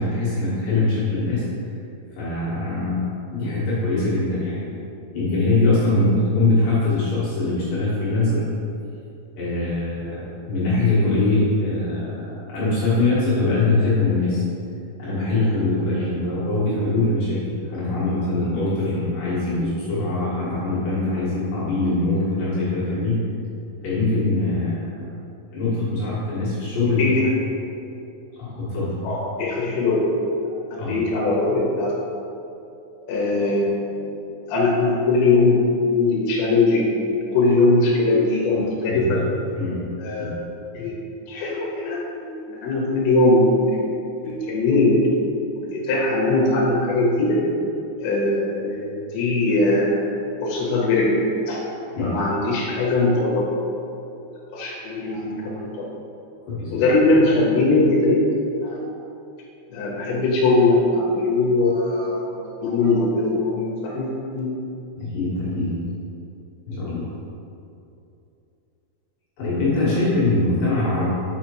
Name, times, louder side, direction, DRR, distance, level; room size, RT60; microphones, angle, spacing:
voice 1, 0.0-1.4 2.1-4.8 5.1-8.4 9.4-14.4 15.0-23.2 23.8-25.0 25.5-27.1 28.3-29.0 30.7-31.0 38.5-38.6 38.9-39.1 39.5-39.8 40.2-40.3 40.8-40.9 52.0-52.2 56.5-56.8 65.0-65.7 66.7-67.1 69.4-71.1, left 2 dB, 60° left, -10 dB, 2.9 m, -22 dB
voice 2, 27.0-27.3 29.0-30.0 30.7-31.9 33.1-34.1 34.5-35.6 35.9-37.1 37.3-39.2 40.0-40.3 40.7-41.0 41.3-43.6 44.2-45.0 45.6-47.4 48.0-50.1 50.4-51.1 51.5-51.6 52.0-53.5 54.5-55.9 56.7-58.2 58.6-58.8 59.7-62.3 62.6-64.5, left 2 dB, 80° left, -4 dB, 3.0 m, -20 dB
6.4 x 6.1 x 3.0 m, 2.7 s
omnidirectional pair, 5.2 m